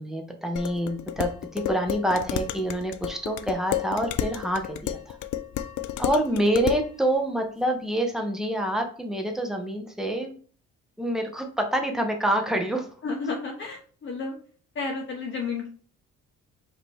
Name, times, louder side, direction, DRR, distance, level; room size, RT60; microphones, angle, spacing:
voice 1, 0.0-5.2 6.0-10.3 11.0-12.9, right 1 dB, ahead, 3 dB, 1.0 m, -27 dB
Dishes pots and pans, 0.6-6.9, left 11 dB, 75° left, 0.5 m, -31 dB
voice 2, 13.0-14.4 14.7-15.7, left 4 dB, 40° left, 0 dB, 0.9 m, -32 dB
5.0 x 2.9 x 3.4 m, 0.43 s
cardioid pair, 90°, 30 cm